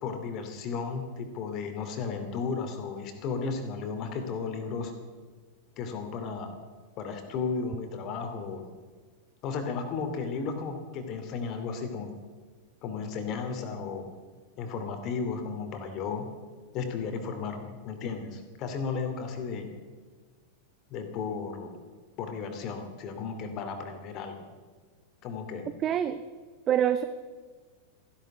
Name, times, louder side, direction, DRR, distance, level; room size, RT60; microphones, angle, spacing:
voice 1, 0.0-4.9 5.8-6.5 7.0-8.6 9.4-12.1 12.8-14.1 14.6-16.3 16.7-19.7 20.9-21.7 22.2-24.4 25.2-25.7, left 5 dB, 35° left, 6 dB, 2.6 m, -34 dB
voice 2, 25.8-26.2 26.7-27.0, right 10 dB, 30° right, 12 dB, 0.7 m, -25 dB
15.0 x 11.5 x 7.9 m, 1.5 s
figure-of-eight pair, 90°, 0 cm